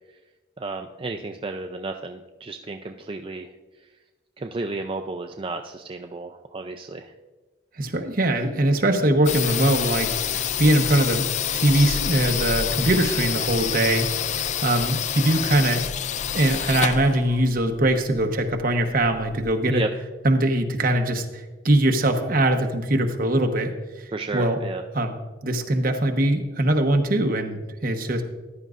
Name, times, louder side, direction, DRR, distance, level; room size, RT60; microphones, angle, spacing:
voice 1, 0.6-3.5 4.4-7.1 19.7-19.9 24.1-24.8, right 3 dB, 30° right, 4 dB, 0.4 m, -32 dB
voice 2, 7.8-10.2 10.6-14.1 14.6-15.9 16.3-19.8 20.2-24.6 24.9-25.1 25.4-28.2, right 1 dB, 55° right, 4 dB, 1.0 m, -22 dB
sound 1, 9.3-19.6, left 9 dB, 45° left, 0.3 m, -28 dB
14.5 x 10.5 x 2.5 m, 1.2 s
head